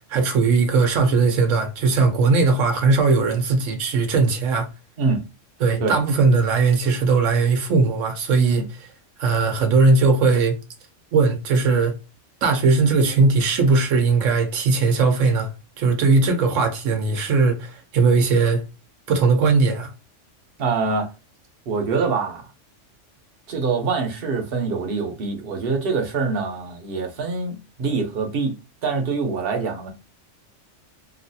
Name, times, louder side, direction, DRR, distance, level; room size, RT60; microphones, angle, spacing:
voice 1, 0.1-4.7 5.6-8.9 9.2-10.6 11.1-11.9 12.4-15.5 15.8-18.6 19.1-19.9, right 4 dB, 85° right, 1.1 m, -19 dB
voice 2, 20.6-21.1 21.7-22.4 23.5-28.5 28.8-29.9, right 4 dB, 55° right, 0.9 m, -24 dB
3.1 x 2.4 x 2.6 m
omnidirectional pair, 1.3 m